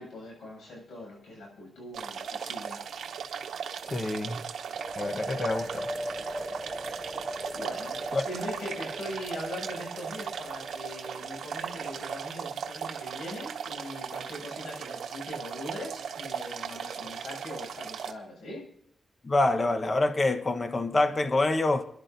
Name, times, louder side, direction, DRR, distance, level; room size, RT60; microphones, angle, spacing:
voice 1, 0.0-2.9 7.5-18.7, left 1 dB, 85° left, 7.5 m, -41 dB
sound 1, 1.9-18.1, right 7 dB, 80° right, 0.9 m, -37 dB
voice 2, 3.9-4.4 5.0-5.9 8.1-8.2 19.2-21.8, left 2 dB, 40° left, 1.1 m, -26 dB
sound 2, 4.7-12.4, equal, 15° right, 0.6 m, -40 dB
27.5 x 11.0 x 2.7 m
cardioid pair, 75°, 0 cm